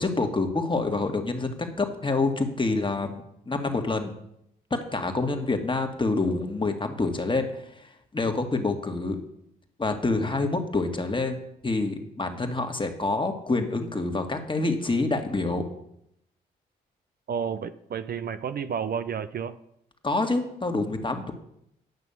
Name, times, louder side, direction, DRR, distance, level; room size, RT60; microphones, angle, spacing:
voice 1, 0.0-4.1 4.7-7.8 8.1-9.2 9.8-15.6 20.0-21.3, left 3 dB, 25° left, 5 dB, 1.7 m, -27 dB
voice 2, 17.3-19.6, right 7 dB, 50° right, 12 dB, 0.5 m, -31 dB
9.4 x 6.0 x 7.1 m, 0.77 s
hypercardioid pair, 45°, 20 cm